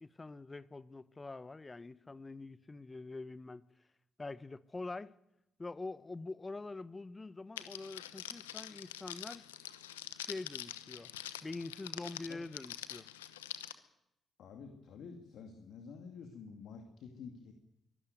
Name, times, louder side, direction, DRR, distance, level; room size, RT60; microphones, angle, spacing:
voice 1, 0.0-3.6 4.2-5.1 5.6-9.4 10.3-11.1 11.4-13.1, left 3 dB, 30° left, 1.2 m, -45 dB
Crackle, 7.6-13.7, left 12 dB, 90° left, 0.9 m, -45 dB
voice 2, 14.4-17.5, left 5 dB, 65° left, 2.4 m, -49 dB
23.5 x 13.0 x 9.5 m
hypercardioid pair, 45°, 0 cm